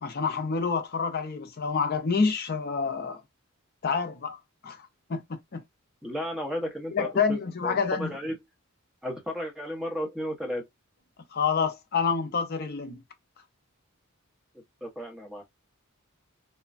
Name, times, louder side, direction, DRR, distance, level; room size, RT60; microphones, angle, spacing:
voice 1, 0.0-3.2 3.8-4.8 5.1-5.6 6.9-8.2 11.3-13.0, left 5 dB, 45° left, 0.5 m, -28 dB
voice 2, 6.0-8.4 9.0-10.7 14.8-15.4, equal, 5° right, 0.8 m, -34 dB
3.0 x 2.2 x 2.4 m
head